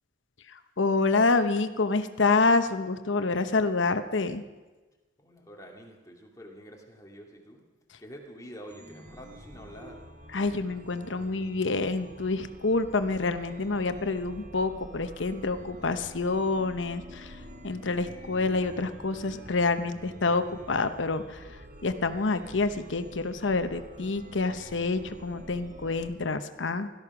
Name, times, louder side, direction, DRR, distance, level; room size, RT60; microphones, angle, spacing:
voice 1, 0.5-4.4 10.3-26.9, left 3 dB, 85° left, 10 dB, 0.9 m, -27 dB
voice 2, 5.2-7.6 8.0-10.0, equal, 20° left, 0 dB, 2.3 m, -47 dB
Chime, 8.6-26.1, equal, 40° right, 2.2 m, -47 dB
17.0 x 13.0 x 6.0 m, 1.2 s
head